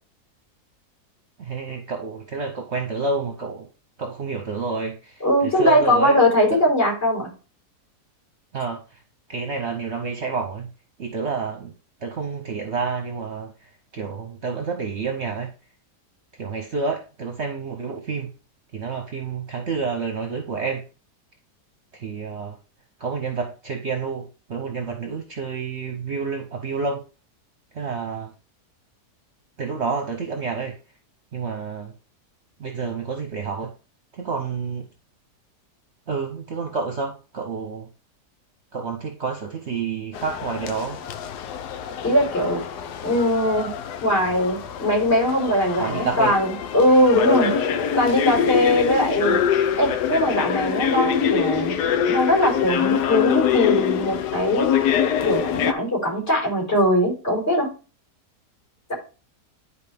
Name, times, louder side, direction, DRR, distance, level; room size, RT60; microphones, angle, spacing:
voice 1, 1.4-3.7 4.0-6.2 6.5-6.6 8.5-9.0 9.3-10.7 11.0-11.7 12.0-15.5 16.3-18.3 18.7-20.8 21.9-22.6 23.0-27.0 27.7-28.3 29.6-30.8 31.3-31.9 32.6-33.7 34.1-34.9 36.1-37.9 38.7-41.0 45.8-46.3, right 5 dB, 50° right, 3 dB, 1.1 m, -29 dB
voice 2, 5.2-7.3 42.0-42.6 43.0-43.7 44.0-47.5 48.0-49.4 49.8-51.7 52.0-54.7 55.2-57.7, left 1 dB, 40° left, -2 dB, 5.4 m, -20 dB
sound 1, 40.1-55.7, left 8 dB, 85° left, 1.3 m, -24 dB
10.5 x 4.6 x 3.5 m, 0.34 s
omnidirectional pair, 1.7 m